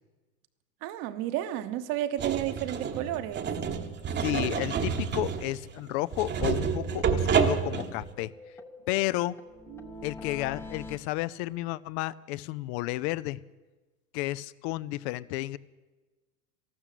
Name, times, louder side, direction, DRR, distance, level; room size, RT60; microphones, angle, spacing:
voice 1, 0.8-3.5 9.7-10.1, right 12 dB, 45° right, 10 dB, 1.2 m, -32 dB
sound 1, 2.2-8.1, right 6 dB, 25° right, 1.1 m, -29 dB
voice 2, 4.2-8.3 8.9-9.4 10.0-13.4 14.1-15.6, left 17 dB, 45° left, 19 dB, 0.5 m, -32 dB
sound 2, 4.6-4.7 5.0-5.1 5.4-5.5 5.8-5.9 6.2-7.5 7.8-11.0, left 2 dB, 5° left, 0.8 m, -46 dB
13.5 x 12.5 x 8.3 m, 1.2 s
hypercardioid pair, 115°, 47 cm